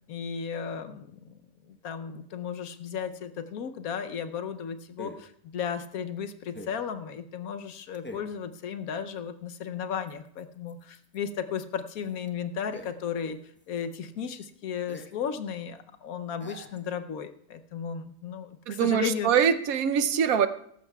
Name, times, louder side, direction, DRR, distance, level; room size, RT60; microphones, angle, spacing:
voice 1, 0.1-1.4 1.7-13.4 13.7-19.4, left 7 dB, 75° left, 9 dB, 1.2 m, -35 dB
sound 1, 2.1-2.2 5.0-5.4 6.5-6.9 7.9-8.4 10.1-11.3 11.6-11.7 11.9-13.3 13.6-13.9 14.4-14.5 14.9-15.2 15.5-15.6 16.4-16.9, equal, 10° left, 0.8 m, -45 dB
voice 2, 18.7-20.5, right 8 dB, 75° right, 11 dB, 1.1 m, -23 dB
17.5 x 14.0 x 2.3 m, 0.68 s
omnidirectional pair, 1.6 m